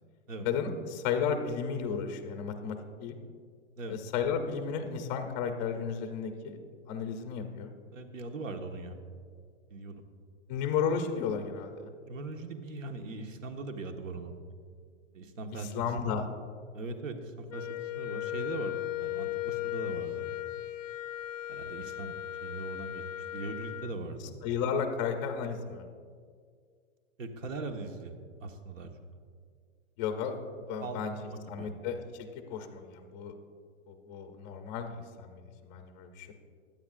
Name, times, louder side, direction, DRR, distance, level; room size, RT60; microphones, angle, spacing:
voice 1, 0.4-3.2 3.9-6.6 6.9-7.7 10.5-11.7 15.7-16.3 24.4-25.9 30.0-30.4 30.7-31.1 31.5-32.0 32.5-33.3 33.9-36.3, left 6 dB, 15° left, 5 dB, 0.4 m, -33 dB
voice 2, 7.9-9.0 9.7-10.0 12.0-14.3 15.1-15.9 16.7-17.7 18.0-18.7 19.0-20.3 21.5-22.2 22.4-23.0 23.3-24.4 27.2-28.9 30.8-31.7, right 3 dB, 90° right, 5 dB, 1.5 m, -40 dB
Wind instrument woodwind instrument, 17.5-24.0, left 14 dB, 90° left, 0.7 m, -37 dB
22.5 x 8.8 x 2.5 m, 2.1 s
hypercardioid pair, 150°, 38 cm